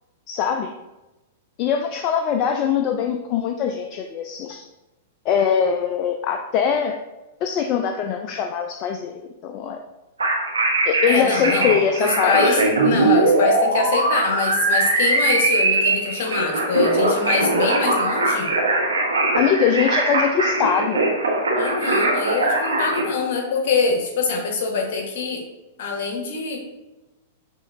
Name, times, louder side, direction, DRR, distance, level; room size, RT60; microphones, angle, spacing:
voice 1, 0.3-0.7 1.6-4.6 5.3-7.0 7.4-9.8 10.9-12.6 19.4-21.0, left 7 dB, 40° left, 4 dB, 0.4 m, -22 dB
sound 1, 10.2-23.0, right 2 dB, 85° right, 1.0 m, -21 dB
voice 2, 11.1-18.5 21.5-25.4 25.8-26.7, left 4 dB, 60° left, 1 dB, 1.3 m, -24 dB
6.4 x 3.1 x 2.6 m, 1.0 s
hypercardioid pair, 105°, 0 cm